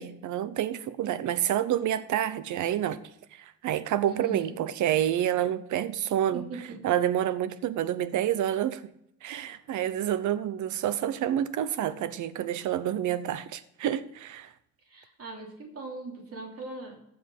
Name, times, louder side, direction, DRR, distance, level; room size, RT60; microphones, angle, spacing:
voice 1, 0.0-3.0 3.4-6.4 6.8-8.9 9.2-14.5, right 11 dB, 75° right, 15 dB, 0.9 m, -28 dB
voice 2, 4.0-4.6 6.3-6.8 14.8-17.0, right 3 dB, 50° right, -1 dB, 3.1 m, -40 dB
15.0 x 5.4 x 5.5 m, 0.75 s
cardioid pair, 90°, 30 cm